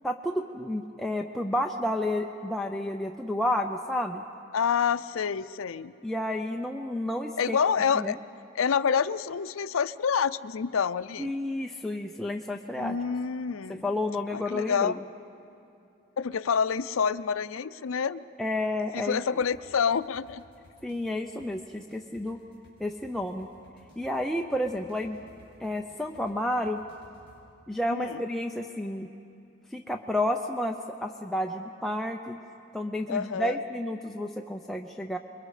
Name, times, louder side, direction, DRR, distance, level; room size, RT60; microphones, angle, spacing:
voice 1, 0.0-4.2 6.0-7.6 7.9-8.2 11.2-13.0 13.7-14.9 18.4-19.4 20.8-22.4 22.8-23.5 24.0-25.2 25.6-26.8 27.7-29.1 29.7-32.4 32.7-35.2, left 1 dB, ahead, 1 dB, 0.5 m, -31 dB
voice 2, 4.5-5.9 7.4-8.2 8.5-11.3 12.7-13.8 14.3-15.0 16.2-18.2 18.9-20.4 27.9-28.2 33.1-33.6, left 6 dB, 85° left, 15 dB, 0.5 m, -27 dB
sound 1, 19.4-27.4, left 1 dB, 25° right, 5.5 m, -57 dB
28.0 x 22.0 x 4.9 m, 2.7 s
head